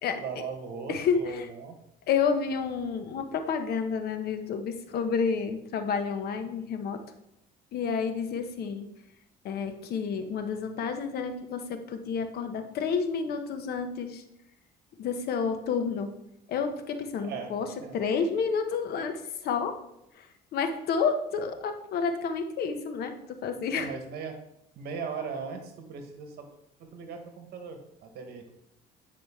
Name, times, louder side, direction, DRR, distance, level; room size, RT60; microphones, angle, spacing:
voice 1, 0.2-1.8 17.2-18.0 23.8-24.3 24.7-26.4 26.9-28.5, right 5 dB, 70° right, 5 dB, 1.3 m, -38 dB
voice 2, 0.9-1.5 2.1-7.0 7.7-8.9 9.4-14.2 15.0-16.1 16.5-17.7 17.9-19.8 20.1-23.9, left 6 dB, 65° left, 6 dB, 1.0 m, -30 dB
9.1 x 4.9 x 3.6 m, 0.80 s
cardioid pair, 110°, 17 cm